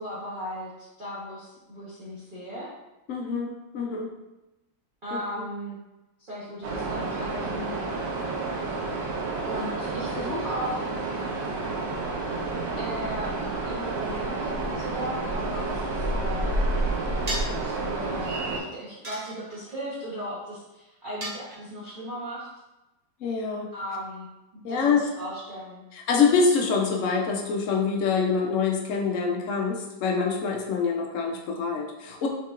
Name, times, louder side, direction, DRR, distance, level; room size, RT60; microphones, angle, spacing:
voice 1, 0.0-2.7 5.0-5.8 6.2-7.8 9.4-10.9 12.8-16.5 17.6-22.5 23.7-24.3 24.5-25.8, equal, 35° right, -9 dB, 0.9 m, -36 dB
voice 2, 3.1-3.5 3.7-4.1 23.2-23.7 24.6-25.1 25.9-32.3, left 5 dB, 75° left, 0 dB, 0.7 m, -25 dB
sound 1, 6.6-18.6, right 2 dB, 70° right, 1.4 m, -30 dB
sound 2, 17.3-17.7 19.0-19.8 21.2-21.9, right 1 dB, 50° right, 0.4 m, -35 dB
5.8 x 3.7 x 2.4 m, 1.0 s
omnidirectional pair, 2.0 m